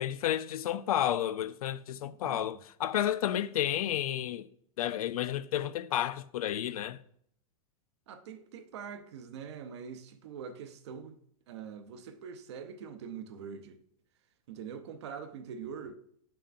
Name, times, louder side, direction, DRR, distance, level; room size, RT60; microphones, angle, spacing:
voice 1, 0.0-4.5 4.8-7.0, left 11 dB, 80° left, 0.5 m, -31 dB
voice 2, 8.1-11.2 11.5-13.8 14.5-16.0, right 7 dB, 50° right, 0.7 m, -43 dB
8.6 x 5.7 x 2.5 m
supercardioid pair, 175°, 18 cm